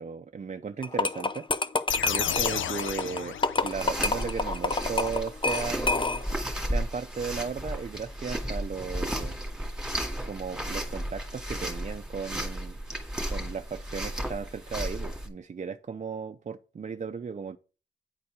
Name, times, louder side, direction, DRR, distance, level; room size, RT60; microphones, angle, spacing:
voice 1, 0.0-1.7 2.0-6.2 6.6-9.4 10.3-12.8 13.3-17.6, right 5 dB, 40° right, 0.5 m, -36 dB
sound 1, 0.8-6.4, left 3 dB, 25° left, 0.6 m, -28 dB
sound 2, 1.9-4.0, left 10 dB, 85° left, 0.5 m, -31 dB
sound 3, 3.6-15.3, right 1 dB, 5° right, 2.0 m, -34 dB
9.6 x 4.4 x 4.8 m
cardioid pair, 75°, 20 cm